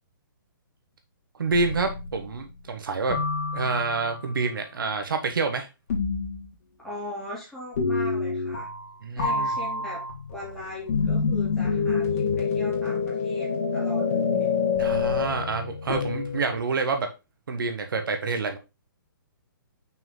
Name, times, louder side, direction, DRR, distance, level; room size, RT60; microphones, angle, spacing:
voice 1, 1.4-3.3 3.5-5.7 9.0-9.5 14.8-17.1 17.5-18.6, right 4 dB, 70° right, 1.3 m, -28 dB
sound 1, 1.5-2.3 3.1-4.2 5.9-6.5 7.8-8.9 9.2-16.6, left 4 dB, 40° left, 2.3 m, -27 dB
voice 2, 6.8-8.7 9.1-10.0 10.3-14.5, left 1 dB, ahead, 2.7 m, -39 dB
5.9 x 4.6 x 3.9 m
hypercardioid pair, 170°, 12 cm